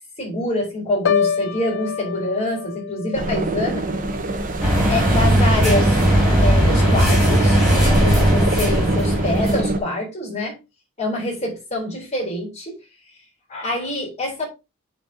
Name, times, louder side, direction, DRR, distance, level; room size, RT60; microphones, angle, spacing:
voice 1, 0.2-3.9 4.9-5.9 6.4-7.6 7.8-10.6 11.0-12.8 13.5-14.5, left 1 dB, 30° left, 3.7 m, -25 dB
Piano, 1.1-5.0 5.4-5.8, left 7 dB, 60° left, 0.6 m, -27 dB
sound 1, 3.1-9.8, right 1 dB, 40° right, 1.0 m, -24 dB
sound 2, 4.6-9.6, equal, ahead, 4.4 m, -17 dB
9.6 x 4.4 x 2.8 m
head